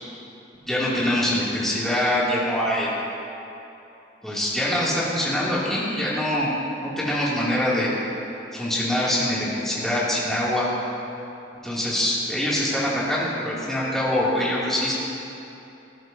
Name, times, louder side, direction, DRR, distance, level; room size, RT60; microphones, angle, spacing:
voice 1, 0.7-2.9 4.2-6.5 6.8-7.9 8.5-10.7 11.6-15.0, left 1 dB, ahead, -8 dB, 2.5 m, -24 dB
18.0 x 12.0 x 2.7 m, 2.9 s
head